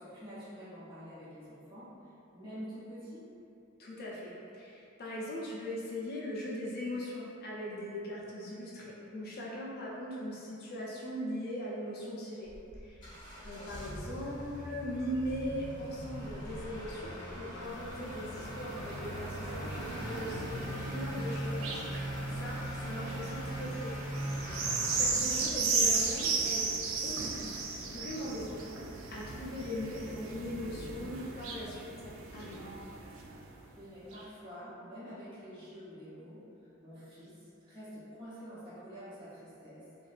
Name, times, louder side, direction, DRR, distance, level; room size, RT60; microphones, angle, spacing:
voice 1, 0.0-1.9 2.3-3.3 33.7-36.4 36.8-39.9, equal, 25° right, -12 dB, 0.8 m, -47 dB
voice 2, 3.8-12.5 12.8-13.1 13.4-21.9 22.3-26.7 27.0-27.5 27.8-32.7, equal, 50° left, -6 dB, 0.4 m, -40 dB
Motor vehicle (road) / Accelerating revving vroom, 12.5-25.1, equal, 20° left, 0.7 m, -40 dB
sound 1, 17.7-33.5 34.1-34.2, right 4 dB, 70° right, 0.3 m, -36 dB
2.6 x 2.2 x 2.4 m, 2.7 s
head